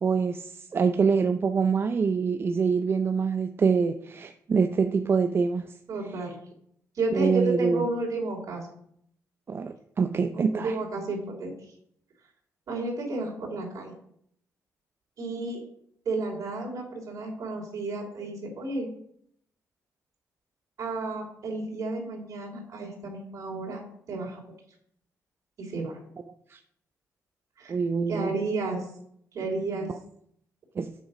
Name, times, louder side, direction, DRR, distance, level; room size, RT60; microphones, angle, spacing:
voice 1, 0.0-5.7 7.1-7.9 9.5-10.8 26.5-26.6 27.7-28.4 30.8-30.9, right 5 dB, 40° right, 8 dB, 0.5 m, -25 dB
voice 2, 5.9-6.3 6.9-8.7 10.3-11.5 12.7-13.9 15.2-15.6 16.0-18.9 20.8-23.8 24.1-24.4 25.6-26.0 27.6-27.7 28.1-28.9 29.3-29.9, right 2 dB, 65° right, -1 dB, 3.2 m, -32 dB
7.8 x 6.5 x 5.1 m, 0.70 s
cardioid pair, 105°, 6 cm